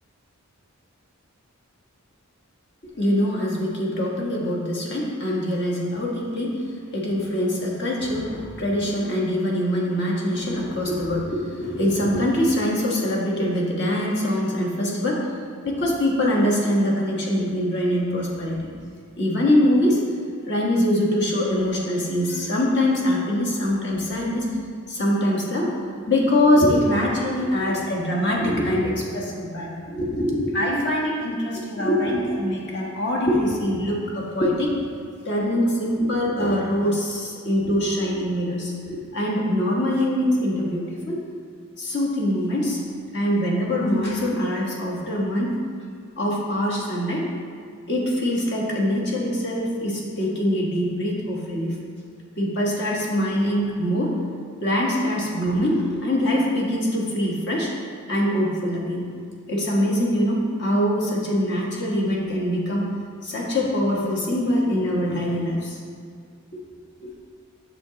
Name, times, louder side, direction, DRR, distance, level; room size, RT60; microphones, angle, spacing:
voice 1, 3.0-6.6 6.9-15.3 15.6-18.7 19.2-20.0 20.5-24.5 24.9-25.7 26.1-34.8 35.2-41.2 41.8-42.8 43.1-45.5 46.2-47.2 47.9-51.8 52.4-54.2 54.6-57.7 58.1-59.0 59.5-62.9 63.2-65.8 67.0-67.1, left 1 dB, 55° left, -3 dB, 1.4 m, -23 dB
7.4 x 6.7 x 2.9 m, 2.1 s
head